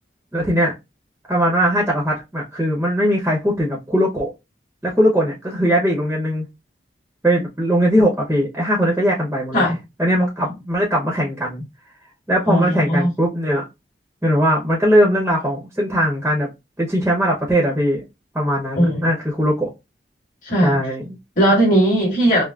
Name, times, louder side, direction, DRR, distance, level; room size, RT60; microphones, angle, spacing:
voice 1, 0.3-0.7 1.3-4.3 4.8-6.4 7.2-9.6 10.0-11.6 12.3-13.6 14.2-16.5 16.8-18.0 18.3-19.7 20.6-21.2, equal, 10° right, 0.8 m, -19 dB
voice 2, 12.5-13.1 18.7-19.1 20.4-20.9 21.4-22.4, right 1 dB, 45° left, 2.0 m, -18 dB
5.6 x 2.0 x 2.4 m
head